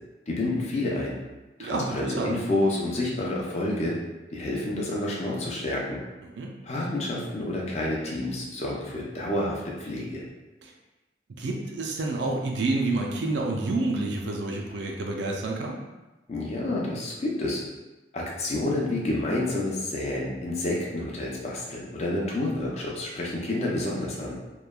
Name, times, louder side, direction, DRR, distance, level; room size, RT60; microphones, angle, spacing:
voice 1, 0.3-1.2 1.6-4.0 4.3-6.0 6.6-10.2 16.3-17.6 18.1-24.4, left 1 dB, 35° left, -3 dB, 0.5 m, -29 dB
voice 2, 1.6-2.3 6.2-6.5 10.6-10.7 11.3-15.8, right 2 dB, 70° right, 0 dB, 0.4 m, -29 dB
3.0 x 2.2 x 2.3 m, 1.1 s
head